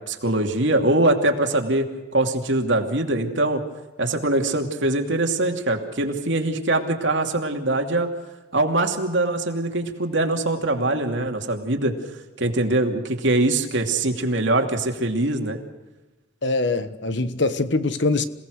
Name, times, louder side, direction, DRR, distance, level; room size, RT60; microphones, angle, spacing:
voice 1, 0.0-1.9 2.1-3.6 4.0-8.1 8.5-12.0 12.4-15.6, right 2 dB, 65° right, 2.7 m, -22 dB
voice 2, 16.4-18.2, left 3 dB, 60° left, 1.2 m, -23 dB
27.5 x 18.0 x 6.5 m
head